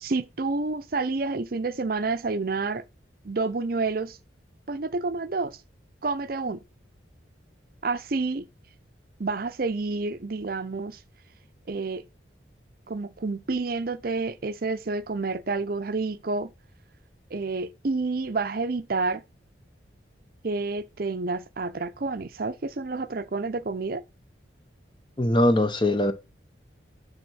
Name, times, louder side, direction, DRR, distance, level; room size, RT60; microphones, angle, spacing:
voice 1, 0.0-2.8 3.2-4.2 4.7-5.6 6.0-6.6 7.8-8.5 9.2-11.0 11.7-12.0 12.9-16.5 17.3-19.2 20.4-24.0, right 3 dB, 50° right, 0.6 m, -29 dB
voice 2, 25.2-26.1, left 1 dB, 25° left, 0.8 m, -21 dB
9.5 x 3.7 x 6.1 m
head